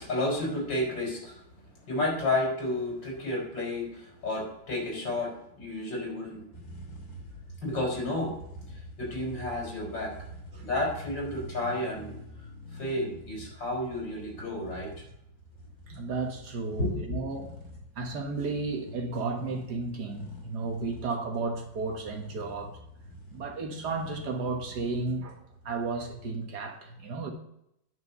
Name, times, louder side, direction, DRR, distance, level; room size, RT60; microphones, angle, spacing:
voice 1, 0.0-1.4 1.9-6.4 7.6-8.3 8.7-10.1 10.6-12.1 12.7-15.0 16.8-17.2, left 1 dB, 70° left, 4.4 m, -31 dB
sound 1, 6.5-26.3, equal, 50° left, 3.2 m, -46 dB
voice 2, 15.9-17.5 18.0-22.8 23.3-27.3, right 3 dB, 60° right, 1.8 m, -33 dB
9.5 x 5.8 x 6.7 m
omnidirectional pair, 2.0 m